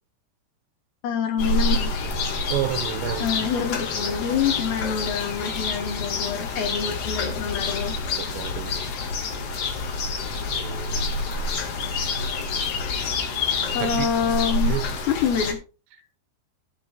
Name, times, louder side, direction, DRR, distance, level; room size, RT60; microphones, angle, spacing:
voice 1, 1.0-1.9 3.2-7.9 13.7-14.7 15.1-15.6, left 7 dB, 75° left, 2.4 m, -26 dB
sound 1, 1.4-15.5, left 3 dB, 90° left, 1.3 m, -27 dB
voice 2, 2.5-3.3 8.3-8.8 10.5-11.2 13.8-14.1 14.6-14.8, right 13 dB, 85° right, 3.1 m, -30 dB
15.5 x 6.3 x 2.5 m
omnidirectional pair, 5.0 m